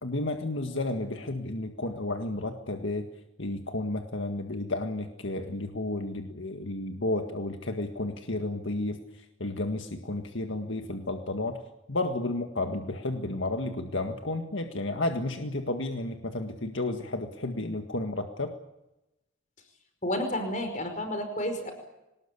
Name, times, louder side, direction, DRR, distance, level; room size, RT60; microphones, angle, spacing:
voice 1, 0.0-3.1 3.4-11.6 11.9-18.5, left 2 dB, 70° left, 5 dB, 1.8 m, -32 dB
voice 2, 20.0-21.7, left 1 dB, 40° left, 6 dB, 5.1 m, -31 dB
24.0 x 20.0 x 8.5 m, 0.94 s
head